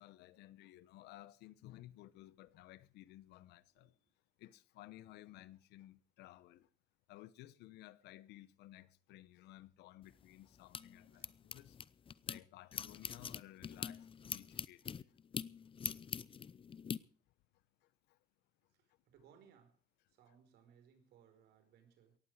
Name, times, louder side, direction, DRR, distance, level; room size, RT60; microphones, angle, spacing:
voice 1, 0.0-3.9 4.4-6.7 7.1-11.7 12.2-14.8, left 15 dB, 85° left, 1.0 m, -56 dB
voice 2, 3.8-4.1 11.1-11.3 18.7-19.8 20.1-22.2, right 8 dB, 75° right, 4.7 m, -66 dB
sound 1, 10.0-12.4 12.7-17.0, left 7 dB, 30° left, 0.6 m, -44 dB
18.0 x 14.5 x 4.8 m
cardioid pair, 110°, 17 cm